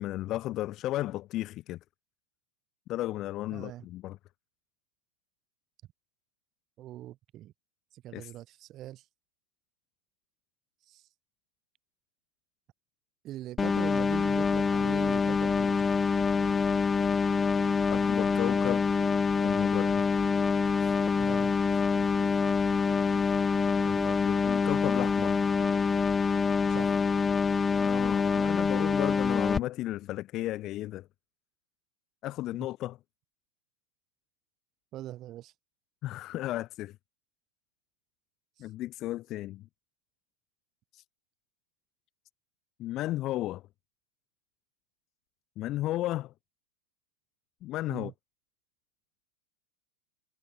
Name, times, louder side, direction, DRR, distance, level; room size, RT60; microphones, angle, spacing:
voice 1, 0.0-1.8 2.9-4.2 8.1-8.3 17.9-18.9 19.4-20.0 23.8-25.4 27.7-31.1 32.2-33.0 36.0-37.0 38.6-39.7 40.9-41.0 42.8-43.6 45.6-46.3 47.6-48.1, left 15 dB, 35° left, 2.0 m, -34 dB
voice 2, 3.5-3.9 6.8-7.5 7.9-9.1 10.9-11.1 13.2-15.9 21.2-21.5 26.7-27.0 34.9-35.5 38.6-38.7 47.9-48.1, right 14 dB, 35° right, 4.1 m, -42 dB
sound 1, 13.6-29.6, left 5 dB, 15° left, 0.4 m, -26 dB
figure-of-eight pair, 90°, 0 cm